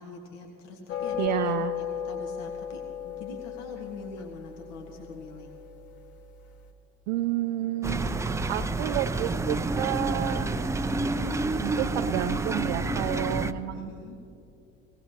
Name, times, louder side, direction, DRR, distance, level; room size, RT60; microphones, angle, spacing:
voice 1, 0.0-5.5 13.7-14.2, left 3 dB, 70° left, 1 dB, 1.7 m, -43 dB
sound 1, 0.9-6.4, left 9 dB, 40° left, 1.6 m, -35 dB
voice 2, 1.2-1.7 7.1-8.2 8.5-10.5 11.6-13.9, right 14 dB, 65° right, 4 dB, 0.6 m, -30 dB
sound 2, 7.8-13.5, right 2 dB, 10° right, 0.4 m, -28 dB
18.5 x 17.5 x 2.9 m, 2.7 s
hypercardioid pair, 70°, 38 cm